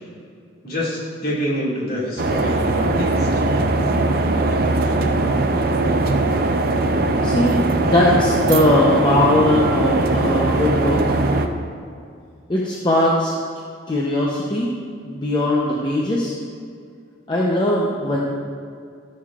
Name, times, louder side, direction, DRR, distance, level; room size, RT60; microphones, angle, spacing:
voice 1, 0.6-3.3, equal, 45° left, -6 dB, 2.2 m, -26 dB
sound 1, 2.2-11.5, right 2 dB, 50° right, 0.5 m, -20 dB
voice 2, 7.2-11.0 12.5-13.3 13.9-14.7 15.0-16.4 17.3-18.2, left 1 dB, 25° left, -4 dB, 0.7 m, -19 dB
13.5 x 6.6 x 2.4 m, 2.3 s
head